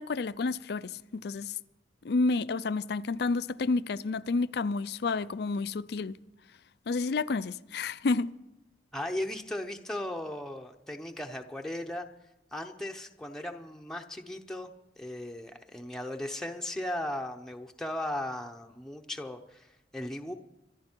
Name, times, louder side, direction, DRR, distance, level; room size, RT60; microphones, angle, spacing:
voice 1, 0.0-1.6 2.0-6.2 6.9-8.3, left 3 dB, 65° left, 0.5 m, -30 dB
voice 2, 8.9-12.1 12.5-14.7 15.0-19.7 19.9-20.3, left 1 dB, 5° left, 0.8 m, -37 dB
25.0 x 11.5 x 4.5 m
head